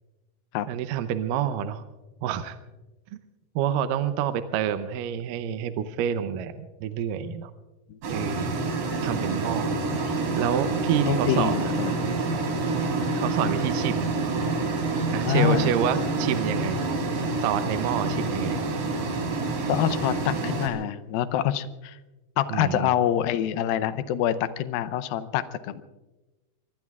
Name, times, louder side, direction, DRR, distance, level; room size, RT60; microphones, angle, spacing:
voice 1, 0.7-1.8 2.2-2.6 3.6-7.5 8.1-8.6 9.0-9.8 10.4-11.7 13.1-14.2 15.1-16.8 17.4-18.6 22.5-22.9, right 9 dB, 75° right, 10 dB, 2.1 m, -28 dB
sound 1, 8.0-20.7, right 3 dB, 60° right, 4.3 m, -27 dB
voice 2, 11.1-11.9 15.2-15.7 19.7-22.0 22.4-25.8, left 11 dB, 80° left, 13 dB, 2.4 m, -26 dB
25.0 x 23.5 x 2.4 m, 1.1 s
omnidirectional pair, 4.5 m